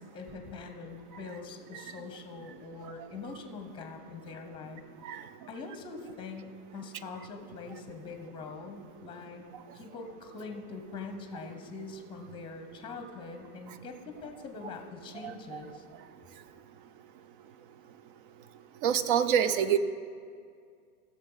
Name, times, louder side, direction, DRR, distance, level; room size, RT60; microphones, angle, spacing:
voice 1, 0.0-4.8 5.5-9.4 9.7-15.8, left 4 dB, 10° left, 5 dB, 0.9 m, -43 dB
voice 2, 15.2-15.6 18.8-19.8, right 9 dB, 40° right, 13 dB, 0.4 m, -26 dB
15.5 x 6.5 x 4.0 m, 2.2 s
hypercardioid pair, 125°, 46 cm